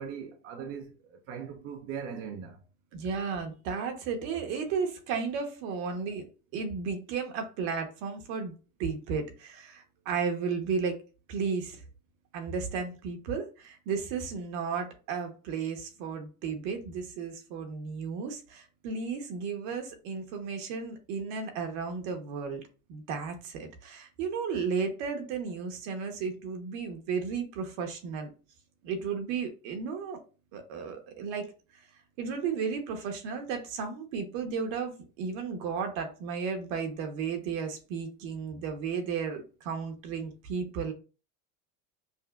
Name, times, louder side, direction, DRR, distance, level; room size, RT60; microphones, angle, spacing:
voice 1, 0.0-2.6, right 7 dB, 35° right, 0.5 m, -40 dB
voice 2, 2.9-6.3 6.5-8.5 8.8-11.0 11.3-11.8 12.3-22.6 22.9-28.3 28.8-30.2 30.5-31.5 32.2-40.9, right 5 dB, 60° right, 1.1 m, -34 dB
5.4 x 2.1 x 2.4 m
supercardioid pair, 140°, 44 cm